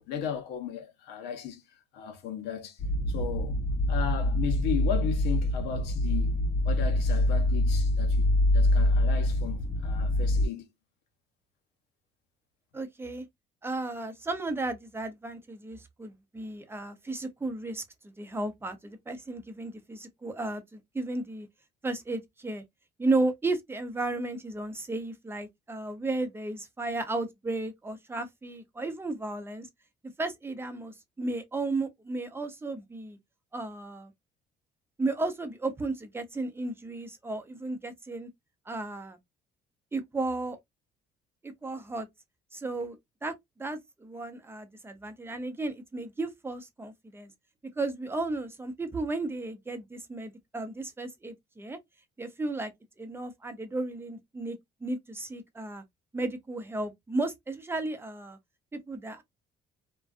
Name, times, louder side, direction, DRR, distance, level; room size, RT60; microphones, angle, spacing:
voice 1, 0.0-2.8 3.1-3.6 3.9-10.7, left 8 dB, 85° left, 0.8 m, -36 dB
sound 1, 2.8-10.5, left 1 dB, 40° left, 0.6 m, -25 dB
voice 2, 12.7-13.3 13.6-21.5 21.8-22.6 23.0-29.7 30.2-33.2 33.5-34.1 35.0-38.3 38.7-39.2 39.9-40.6 41.4-42.1 42.5-43.3 43.6-47.3 47.8-51.8 52.2-52.7 53.0-55.8 56.1-58.4 58.7-59.2, right 2 dB, 15° right, 0.5 m, -34 dB
2.4 x 2.2 x 2.4 m
cardioid pair, 110°, 17 cm